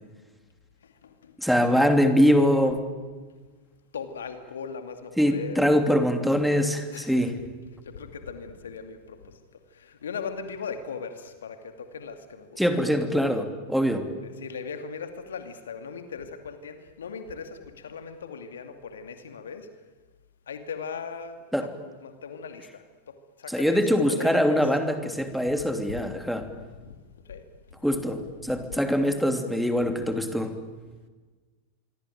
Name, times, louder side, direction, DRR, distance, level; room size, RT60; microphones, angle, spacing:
voice 1, 0.8-1.4 3.9-5.6 6.9-7.3 7.8-9.4 9.7-12.6 14.2-19.7 20.5-21.7 22.0-23.8 24.1-24.6 25.9-27.0 27.2-27.4 28.4-28.8, left 6 dB, 65° left, 8 dB, 2.4 m, -39 dB
voice 2, 1.4-2.8 5.2-7.3 12.6-14.1 21.5-21.7 23.5-26.5 27.8-30.5, equal, ahead, 7 dB, 3.0 m, -23 dB
26.0 x 24.0 x 9.1 m, 1.3 s
figure-of-eight pair, 90°, 0 cm